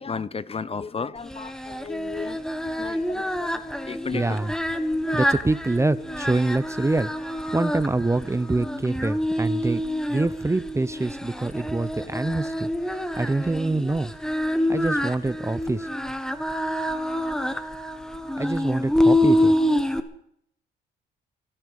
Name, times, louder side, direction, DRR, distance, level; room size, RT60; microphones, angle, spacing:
voice 1, 0.0-2.4 2.8-3.2 3.5-4.5, left 5 dB, 30° left, 16 dB, 0.7 m, -33 dB
Singing, 1.3-20.0, left 1 dB, 5° left, 1.4 m, -27 dB
voice 2, 4.1-4.5 5.1-9.8 10.1-12.7 13.2-14.1 14.7-15.9 18.4-19.6, right 2 dB, 15° right, 15 dB, 0.7 m, -25 dB
25.5 x 8.9 x 6.5 m, 0.70 s
cardioid pair, 90°, 20 cm